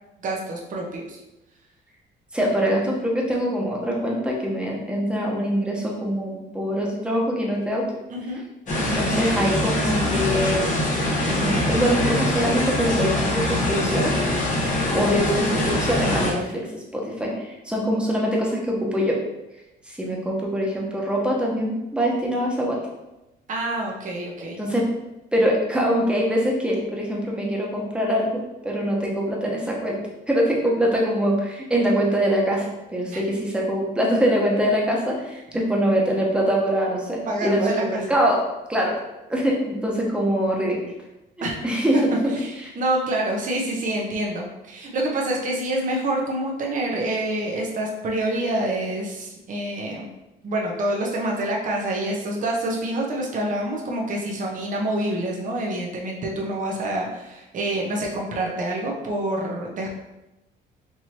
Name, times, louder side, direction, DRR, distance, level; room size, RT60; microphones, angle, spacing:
voice 1, 0.2-1.2 8.1-8.4 23.5-24.6 33.1-33.2 37.3-38.0 41.4-41.6 41.9-50.1 50.4-59.9, right 1 dB, 45° right, -1 dB, 0.8 m, -27 dB
voice 2, 2.3-7.9 8.7-10.6 11.2-14.1 14.9-16.6 16.9-19.2 19.9-22.8 24.6-24.9 25.3-30.0 30.3-38.4 38.7-39.0 39.3-40.8 41.6-42.0, equal, 5° right, -3 dB, 1.0 m, -23 dB
sound 1, 8.7-16.3, left 1 dB, 40° left, 1.3 m, -23 dB
4.6 x 2.8 x 2.9 m, 0.96 s
cardioid pair, 100°, 19 cm